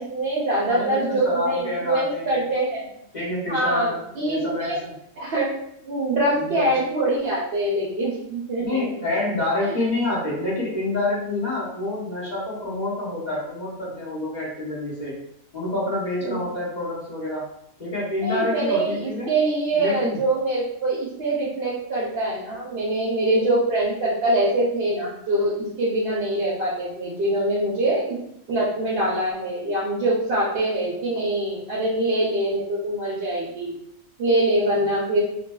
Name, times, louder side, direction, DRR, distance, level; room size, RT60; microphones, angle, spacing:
voice 1, 0.0-2.9 3.5-4.8 5.2-5.5 5.8-9.1 9.6-9.7 16.2-16.5 18.2-28.2 28.5-33.7 34.2-35.2, right 1 dB, 55° right, -7 dB, 0.8 m, -24 dB
voice 2, 0.7-2.4 3.1-4.9 6.3-6.7 8.6-15.2 15.5-17.5 17.8-19.3 19.7-20.2, left 2 dB, 35° left, -7 dB, 0.9 m, -27 dB
3.1 x 2.5 x 2.2 m, 0.75 s
omnidirectional pair, 1.4 m